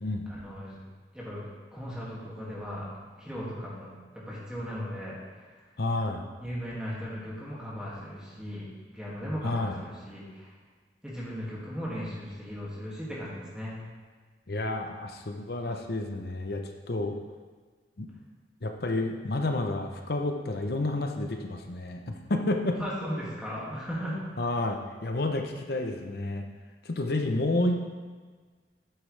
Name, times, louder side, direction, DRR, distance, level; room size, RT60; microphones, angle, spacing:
voice 1, 0.3-0.8 1.1-2.9 3.2-5.6 6.4-10.5 11.0-13.8 22.8-24.2, equal, 5° right, -7 dB, 2.2 m, -37 dB
voice 2, 5.8-6.3 9.4-9.7 14.5-17.1 18.0-18.1 18.6-22.8 24.4-26.4 26.8-27.9, left 2 dB, 60° left, 4 dB, 0.8 m, -30 dB
9.2 x 8.1 x 3.3 m, 1.5 s
head